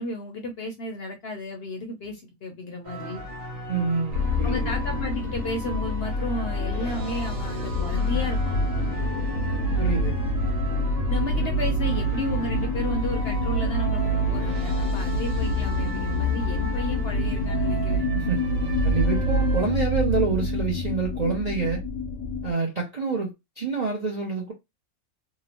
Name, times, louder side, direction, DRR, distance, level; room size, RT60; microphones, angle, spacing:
voice 1, 0.0-3.2 4.4-8.6 11.1-18.1, left 1 dB, 60° left, 0.7 m, -33 dB
sound 1, 2.8-19.7, right 1 dB, 70° right, 1.3 m, -38 dB
voice 2, 3.7-4.7 9.8-10.2 18.1-18.4 18.8-21.8 22.4-24.5, right 4 dB, 50° right, 0.5 m, -27 dB
sound 2, 4.1-22.5, equal, 80° left, 1.0 m, -26 dB
2.8 x 2.0 x 2.8 m
omnidirectional pair, 1.5 m